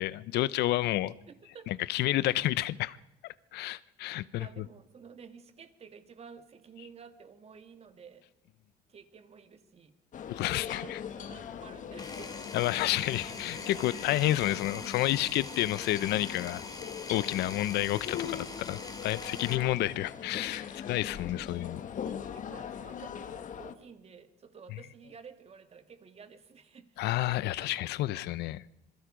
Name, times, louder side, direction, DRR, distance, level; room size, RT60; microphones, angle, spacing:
voice 1, 0.0-1.1 1.7-3.0 3.5-4.5 10.3-11.0 12.5-16.6 17.1-21.8 27.0-28.6, left 15 dB, 80° left, 0.8 m, -30 dB
voice 2, 1.3-1.7 4.4-8.3 8.9-10.0 10.7-12.9 13.6-14.2 19.2-20.3 20.9-28.5, right 6 dB, 35° right, 2.2 m, -53 dB
sound 1, 10.1-23.8, left 8 dB, 50° left, 1.5 m, -41 dB
Power tool, 12.0-19.6, left 3 dB, 25° left, 3.0 m, -44 dB
27.0 x 22.0 x 5.2 m
cardioid pair, 110°, 17 cm